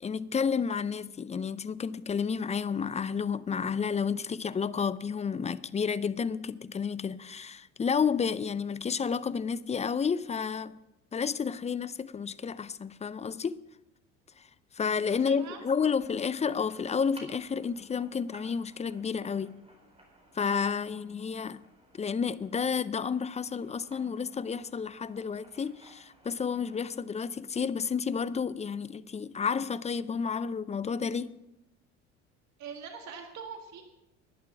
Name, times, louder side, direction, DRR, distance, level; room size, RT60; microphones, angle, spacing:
voice 1, 0.0-10.8 11.1-13.5 14.7-19.6 20.3-21.6 22.0-31.3, left 6 dB, 20° left, 0.5 m, -31 dB
sound 1, 15.1-27.0, right 1 dB, 15° right, 4.3 m, -58 dB
voice 2, 15.3-15.6 32.6-33.8, right 6 dB, 50° right, 1.8 m, -42 dB
11.5 x 11.0 x 6.0 m
hypercardioid pair, 70°, 35 cm